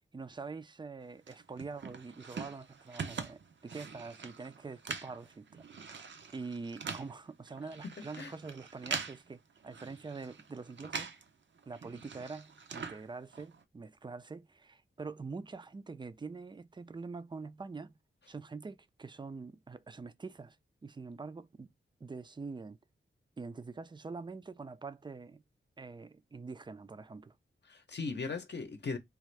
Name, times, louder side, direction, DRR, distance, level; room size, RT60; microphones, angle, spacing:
voice 1, 0.1-11.1 11.7-17.9 18.3-20.6 20.8-21.7 22.0-22.8 23.4-25.4 25.8-27.4, right 4 dB, 20° right, 0.4 m, -45 dB
sound 1, 1.3-11.3 11.6-13.6, right 5 dB, 65° right, 0.6 m, -44 dB
voice 2, 7.8-8.3 27.7-29.0, left 4 dB, 55° left, 0.7 m, -38 dB
3.5 x 2.5 x 3.1 m
wide cardioid pair, 90°, 21 cm